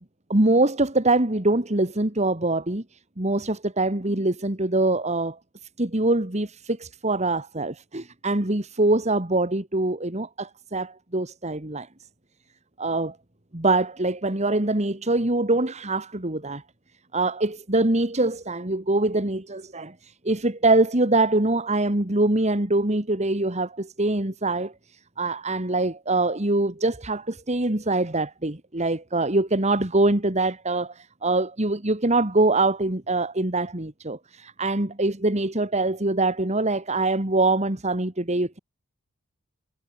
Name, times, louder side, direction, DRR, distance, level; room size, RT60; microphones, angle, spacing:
voice 1, 0.3-2.8 3.2-5.4 5.8-11.9 12.8-13.2 13.5-16.6 17.1-24.7 25.2-38.6, right 2 dB, 30° right, 2.0 m, -24 dB
head